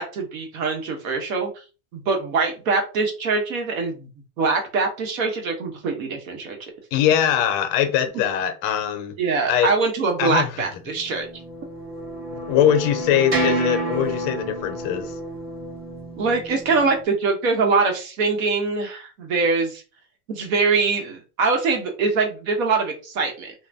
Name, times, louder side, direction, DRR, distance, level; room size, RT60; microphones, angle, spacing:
voice 1, 0.0-1.5 1.9-4.1 4.4-6.6 9.2-11.2 16.2-19.8 20.3-23.5, right 4 dB, 65° right, 1.2 m, -23 dB
voice 2, 6.9-9.2 9.5-9.7 10.2-10.6 12.5-15.2, left 9 dB, 40° left, 0.5 m, -21 dB
sound 1, 11.0-17.0, right 1 dB, 30° right, 1.2 m, -29 dB
2.5 x 2.4 x 3.3 m
supercardioid pair, 145°, 45 cm